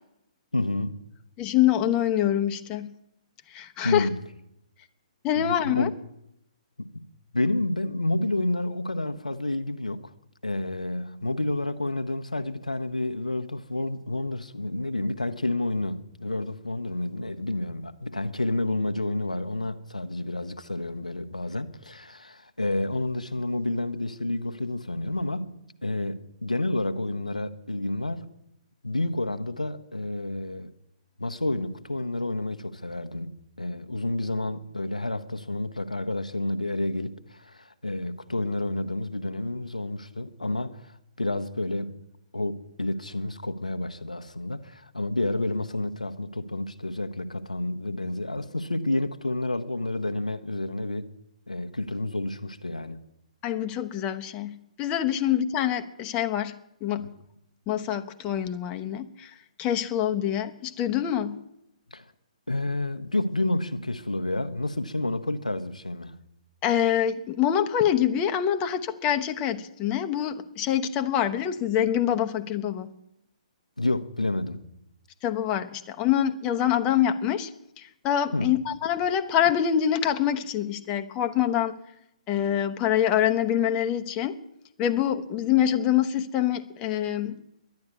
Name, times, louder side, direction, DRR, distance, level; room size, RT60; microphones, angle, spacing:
voice 1, 0.5-1.0 3.8-4.2 5.4-5.9 6.9-7.0 7.3-10.0 10.4-28.3 28.8-30.7 31.2-41.9 42.3-51.1 51.5-53.0 57.0-57.1 61.9-62.1 62.5-66.2 73.8-74.7 78.3-78.6, left 2 dB, 90° left, 1.0 m, -30 dB
voice 2, 1.4-2.9 3.5-4.1 5.2-5.9 53.4-56.5 56.8-57.1 57.7-61.4 66.6-72.9 75.2-77.5 77.8-81.7 82.3-84.4 84.8-87.4, left 10 dB, 25° left, 1.0 m, -25 dB
11.5 x 10.5 x 9.6 m
figure-of-eight pair, 125°, 4 cm